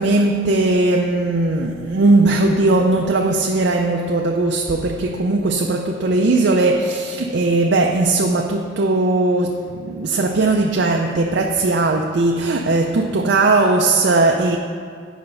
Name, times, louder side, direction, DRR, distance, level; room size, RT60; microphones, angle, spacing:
voice 1, 0.0-14.6, right 2 dB, 65° right, 0.5 m, -18 dB
9.0 x 5.2 x 5.4 m
head